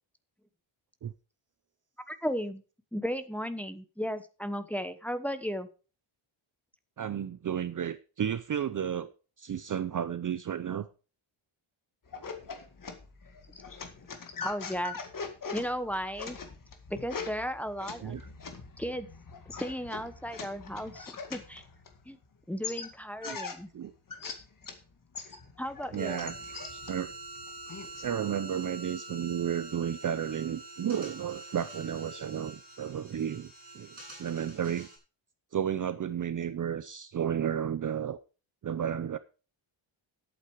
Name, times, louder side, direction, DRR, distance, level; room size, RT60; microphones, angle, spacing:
voice 1, 2.1-2.6 2.9-5.7 14.4-15.0 15.5-16.4 16.9-18.2 18.8-19.1 19.5-21.6 22.0-22.2 22.5-23.7 25.6-26.3, equal, 5° left, 1.0 m, -35 dB
voice 2, 7.0-9.1 9.4-10.9 18.0-18.2 23.2-23.4 23.7-23.9 25.9-26.3 26.7-27.1 28.0-34.9 35.5-38.2 38.6-39.2, right 9 dB, 40° right, 0.6 m, -32 dB
sound 1, 12.1-22.2 22.6-24.8 25.1-28.1, left 5 dB, 40° left, 2.1 m, -42 dB
sound 2, 26.0-35.0, right 2 dB, 20° right, 7.4 m, -46 dB
11.0 x 8.8 x 4.7 m
wide cardioid pair, 155°, 50 cm